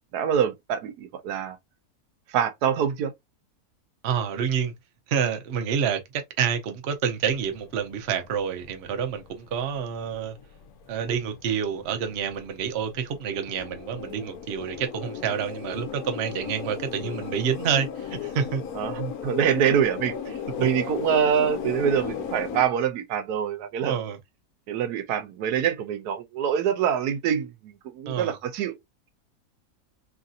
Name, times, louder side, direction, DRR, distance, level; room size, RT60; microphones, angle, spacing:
voice 1, 0.1-1.6 2.3-3.1 18.7-23.9 24.7-28.8, right 8 dB, 85° right, 1.2 m, -25 dB
voice 2, 4.0-4.7 5.1-10.4 10.9-18.6 20.6-20.7 23.9-24.2 28.1-28.3, right 7 dB, 55° right, 0.8 m, -28 dB
sound 1, 7.4-22.7, left 7 dB, 75° left, 1.1 m, -36 dB
3.1 x 2.6 x 2.4 m
omnidirectional pair, 1.6 m